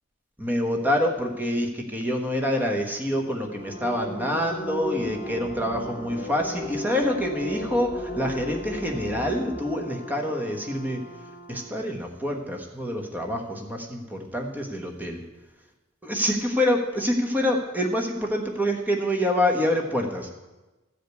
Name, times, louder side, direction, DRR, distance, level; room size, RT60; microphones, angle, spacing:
voice 1, 0.4-11.0 11.5-15.2 16.0-20.3, equal, 10° right, 2 dB, 1.2 m, -26 dB
Brass instrument, 3.1-11.8, right 1 dB, 40° left, 1.2 m, -44 dB
sound 1, 3.6-11.0, left 1 dB, 10° left, 2.0 m, -35 dB
13.5 x 5.1 x 8.1 m, 1.1 s
head